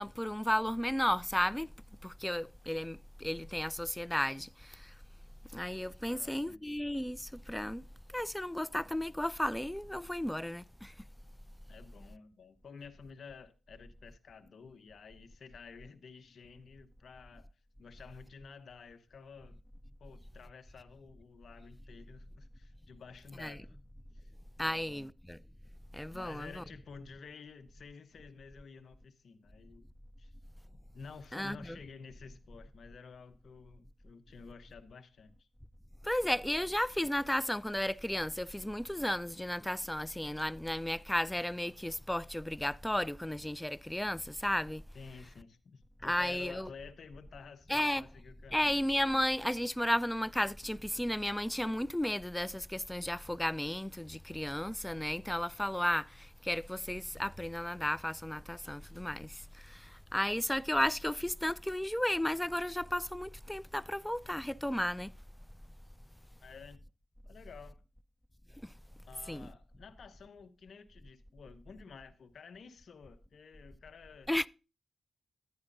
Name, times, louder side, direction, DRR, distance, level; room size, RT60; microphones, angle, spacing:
voice 1, 0.0-1.7 2.0-4.9 5.5-7.9 8.1-10.9 23.4-23.6 24.6-25.4 25.9-26.6 31.3-31.8 36.0-44.8 46.0-46.7 47.7-48.0 48.5-65.1 68.6-68.7 69.3-69.5 74.3-74.5, left 1 dB, 10° left, 0.3 m, -34 dB
voice 2, 6.1-6.6 11.7-17.5 17.8-19.6 20.0-23.8 24.1-24.3 24.6-25.1 26.1-29.9 30.2-30.3 30.7-35.5 44.9-48.7 66.4-66.8 67.2-67.8 69.1-74.3, left 5 dB, 65° left, 0.8 m, -52 dB
11.0 x 9.5 x 2.6 m
supercardioid pair, 40°, 0 cm